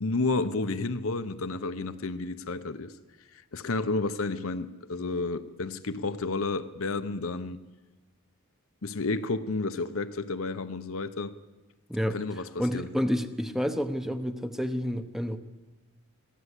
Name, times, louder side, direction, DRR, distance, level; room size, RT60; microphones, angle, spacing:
voice 1, 0.0-2.9 3.5-7.6 8.8-11.3 12.1-12.9, left 3 dB, 65° left, 0.8 m, -31 dB
voice 2, 11.9-15.4, equal, ahead, 0.9 m, -30 dB
23.0 x 15.5 x 8.2 m
head